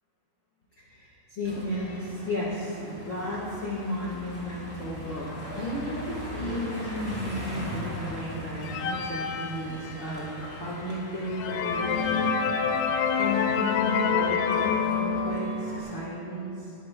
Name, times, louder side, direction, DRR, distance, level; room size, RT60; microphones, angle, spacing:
voice 1, 0.8-5.3 5.5-12.4 13.2-16.7, left 1 dB, 65° left, -5 dB, 1.2 m, -33 dB
sound 1, 1.4-16.1, equal, 5° left, 1.8 m, -40 dB
sound 2, 8.6-10.3 10.8-10.9 11.3-15.8, left 6 dB, 85° left, 2.0 m, -27 dB
19.5 x 10.5 x 2.3 m, 2.7 s
omnidirectional pair, 4.6 m